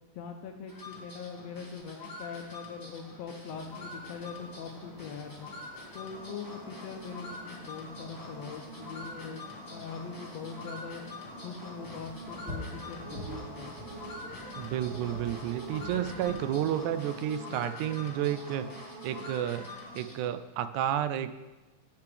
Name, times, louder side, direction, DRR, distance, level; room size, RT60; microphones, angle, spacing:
voice 1, 0.1-5.5 5.9-11.0 11.4-13.7, left 6 dB, 70° left, 4 dB, 1.7 m, -42 dB
sound 1, 0.7-20.4, left 1 dB, 30° left, 0.3 m, -44 dB
sound 2, 3.5-17.3, equal, 20° right, 1.0 m, -47 dB
voice 2, 14.6-18.7 19.0-19.7 20.0-21.4, right 11 dB, 85° right, 11 dB, 2.0 m, -31 dB
17.0 x 7.0 x 3.4 m, 1.1 s
omnidirectional pair, 3.4 m